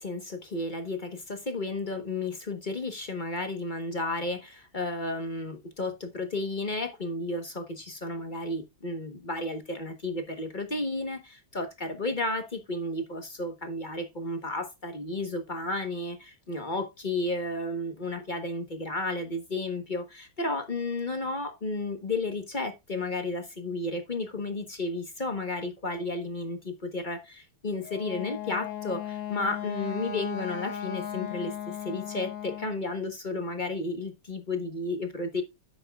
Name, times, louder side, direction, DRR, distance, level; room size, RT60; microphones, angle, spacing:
voice 1, 0.0-35.4, left 2 dB, 30° left, 0.9 m, -33 dB
Wind instrument woodwind instrument, 27.8-32.8, left 10 dB, 75° left, 2.5 m, -36 dB
10.5 x 8.0 x 2.4 m
omnidirectional pair, 2.4 m